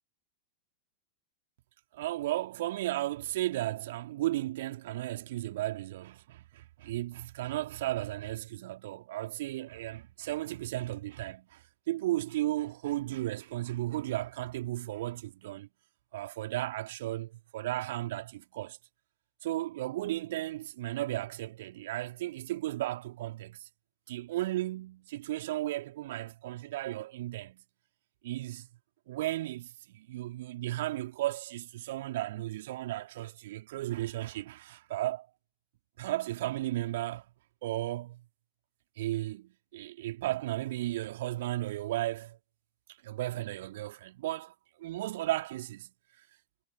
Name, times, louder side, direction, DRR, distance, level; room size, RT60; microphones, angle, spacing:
voice 1, 1.9-15.7 16.1-18.8 19.4-23.7 24.1-27.6 28.2-28.7 29.1-35.3 36.0-37.3 37.6-38.2 39.0-42.4 43.0-45.9, right 15 dB, 55° right, 2.6 m, -35 dB
figure-of-eight pair, 90°, 0 cm